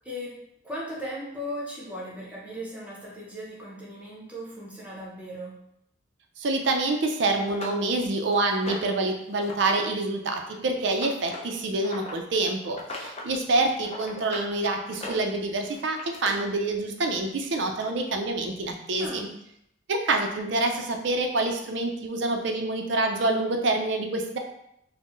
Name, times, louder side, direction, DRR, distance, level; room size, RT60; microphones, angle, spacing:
voice 1, 0.0-0.4 0.6-5.6 19.0-19.3, equal, 5° right, -5 dB, 0.8 m, -37 dB
voice 2, 6.4-19.3 19.9-24.4, right 2 dB, 60° right, 4 dB, 0.4 m, -27 dB
sound 1, 6.9-7.0 7.5-9.0 9.4-9.8 10.1-12.2 12.7-13.3 13.6-14.5 14.9-16.3 17.3-17.4 17.8-17.9, left 2 dB, 30° left, 0.4 m, -39 dB
4.3 x 2.1 x 3.1 m, 0.77 s
head